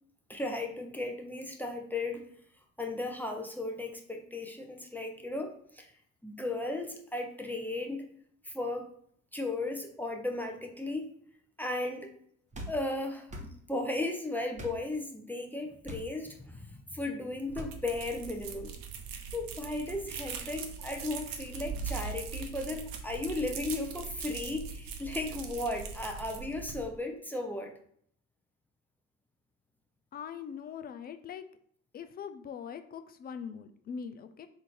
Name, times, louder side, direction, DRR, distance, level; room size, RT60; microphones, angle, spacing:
voice 1, 0.3-2.3 2.8-5.9 6.2-8.1 8.4-8.9 9.3-11.1 11.6-12.1 12.7-18.7 19.3-27.7, left 2 dB, 5° left, 2 dB, 0.7 m, -35 dB
sound 1, 12.5-12.8 13.3-13.5 14.5-14.8 15.8-16.1 17.5-17.7, equal, 15° right, 1.1 m, -41 dB
sound 2, 17.5-26.9, right 6 dB, 50° right, 0.9 m, -41 dB
voice 2, 30.1-31.4 31.9-34.5, left 7 dB, 25° left, 9 dB, 0.3 m, -42 dB
3.7 x 2.6 x 4.4 m, 0.63 s
hypercardioid pair, 75°, 43 cm